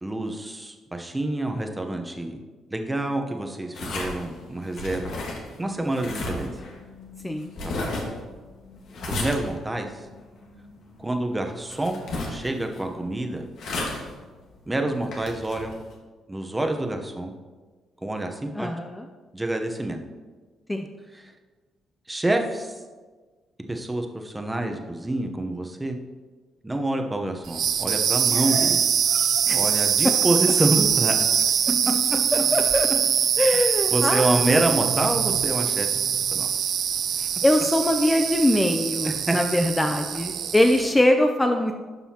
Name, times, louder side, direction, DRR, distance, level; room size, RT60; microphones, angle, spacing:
voice 1, 0.0-2.4 2.7-5.1 5.6-6.6 7.6-7.9 9.1-10.1 11.0-12.0 12.3-13.4 14.7-15.8 16.3-17.3 18.0-18.7 19.3-20.0 21.1-21.3 22.1-22.8 23.7-26.0 26.6-28.8 29.5-31.4 33.9-35.9 36.3-36.5 39.0-39.4, right 1 dB, 15° right, 4 dB, 0.9 m, -27 dB
sound 1, 3.7-15.9, left 2 dB, 75° left, 1.6 m, -35 dB
voice 2, 18.6-19.0 20.7-20.9 29.5-29.6 32.3-32.9 33.4-34.3 37.4-41.7, left 1 dB, 10° left, 5 dB, 0.5 m, -22 dB
sound 2, 27.4-41.0, right 8 dB, 65° right, 0.3 m, -23 dB
11.5 x 5.5 x 2.9 m, 1.4 s
cardioid pair, 90°, 0 cm